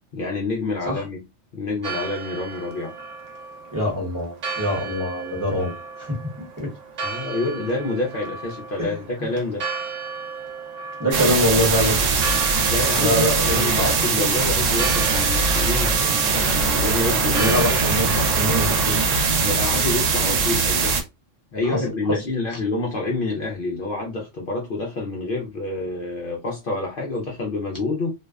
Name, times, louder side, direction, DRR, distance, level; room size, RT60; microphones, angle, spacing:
voice 1, 0.1-1.2 1.5-2.9 7.0-9.6 12.7-13.2 13.4-16.0 16.3-17.8 19.3-21.0 21.5-28.1, left 3 dB, 60° left, 0.6 m, -28 dB
Church bell, 1.8-18.9, right 4 dB, 65° right, 0.4 m, -35 dB
voice 2, 3.7-6.7 8.8-8.9 9.2-9.3 11.0-12.0 13.0-13.9 17.4-19.0 21.6-21.8 22.1-22.2, equal, 20° right, 0.8 m, -24 dB
sound 1, 11.1-21.0, right 4 dB, 80° right, 1.0 m, -21 dB
2.5 x 2.1 x 2.3 m
omnidirectional pair, 1.3 m